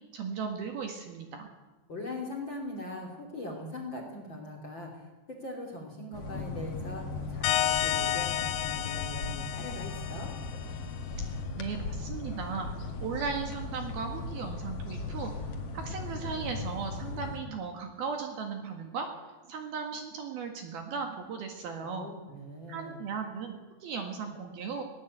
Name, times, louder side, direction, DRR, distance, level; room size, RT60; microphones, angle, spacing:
voice 1, 0.1-1.5 11.6-12.7 13.0-15.3 15.7-19.1 19.5-22.1 22.7-24.8, right 5 dB, 60° right, 4 dB, 3.3 m, -36 dB
voice 2, 1.9-10.3 21.8-23.0, left 1 dB, 30° left, 3 dB, 2.9 m, -41 dB
sound 1, 6.1-17.4, left 3 dB, 50° left, 1.9 m, -37 dB
sound 2, 7.4-10.8, left 12 dB, 80° left, 2.4 m, -31 dB
20.0 x 19.0 x 8.2 m, 1.2 s
omnidirectional pair, 5.7 m